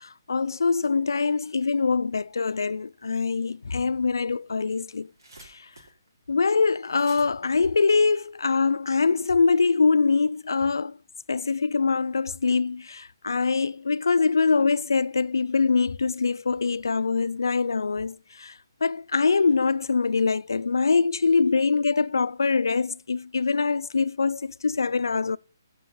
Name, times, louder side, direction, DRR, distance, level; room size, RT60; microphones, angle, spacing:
voice 1, 0.0-5.1 5.4-5.6 6.3-11.0 11.3-18.5 18.8-25.4, left 4 dB, 75° left, 0.6 m, -24 dB
sound 1, 4.5-8.7, right 2 dB, 75° right, 4.4 m, -53 dB
14.5 x 6.3 x 5.7 m
figure-of-eight pair, 145°, 2 cm